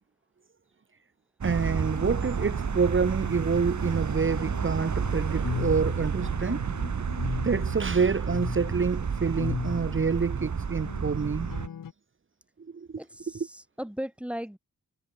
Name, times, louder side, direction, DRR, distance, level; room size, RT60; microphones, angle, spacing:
voice 1, 1.4-6.6 7.4-11.5 12.7-12.9, right 5 dB, 40° right, 1.0 m, -27 dB
sound 1, 1.4-11.7, right 6 dB, 60° right, 2.3 m, -30 dB
sound 2, 1.5-11.9, left 8 dB, 85° left, 2.4 m, -39 dB
voice 2, 13.0-14.6, equal, 5° right, 5.8 m, -38 dB
wide cardioid pair, 80°, 33 cm